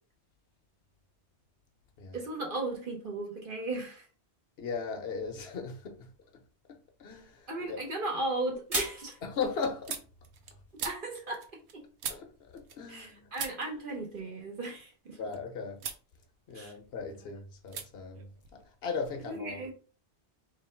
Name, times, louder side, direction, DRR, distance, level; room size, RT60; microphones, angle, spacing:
voice 1, 2.1-4.0 7.5-9.2 10.8-11.5 11.7-11.8 12.9-15.2 16.5-16.7 19.2-19.7, right 2 dB, 50° right, 1.3 m, -36 dB
voice 2, 4.6-6.1 6.7-7.8 9.2-10.0 12.1-13.3 15.2-15.8 16.5-19.6, left 5 dB, 70° left, 1.1 m, -38 dB
sound 1, 7.1-13.0, right 1 dB, 35° right, 1.4 m, -43 dB
sound 2, 7.1-7.6 8.0-13.1 13.3-15.4 15.8-16.1 16.4-17.2 17.7-17.9 18.1-19.2, right 7 dB, 85° right, 1.0 m, -43 dB
3.2 x 3.0 x 4.4 m
omnidirectional pair, 1.1 m